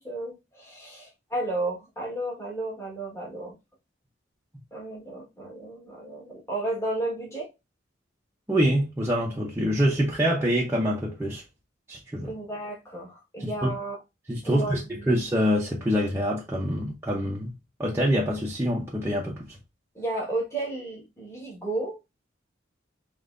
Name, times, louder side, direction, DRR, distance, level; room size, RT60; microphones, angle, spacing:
voice 1, 0.0-3.5 4.7-7.5 12.2-14.0 14.4-15.1 19.9-22.0, right 2 dB, 15° left, 1.6 m, -33 dB
voice 2, 8.5-11.4 11.9-12.3 13.4-13.7 14.3-17.5 17.8-19.6, equal, 15° right, 0.8 m, -25 dB
5.4 x 3.1 x 2.6 m
head